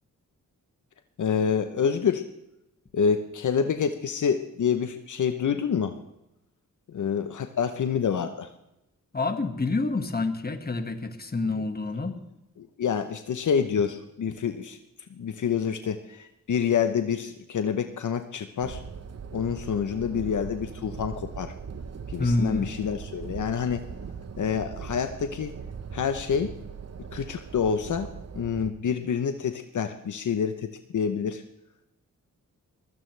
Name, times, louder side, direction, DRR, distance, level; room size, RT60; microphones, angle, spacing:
voice 1, 1.2-2.2 2.9-6.0 6.9-8.5 11.5-11.7 12.6-14.8 15.2-18.8 19.3-21.5 22.1-23.8 24.4-25.5 25.9-26.5 27.1-28.1 28.3-31.4, left 7 dB, 65° left, 8 dB, 0.9 m, -27 dB
voice 2, 9.1-12.1 22.2-22.7, left 3 dB, 30° left, 7 dB, 1.8 m, -27 dB
sound 1, 18.6-28.7, right 6 dB, 50° right, 1.1 m, -40 dB
22.0 x 16.0 x 3.3 m, 0.89 s
cardioid pair, 70°, 32 cm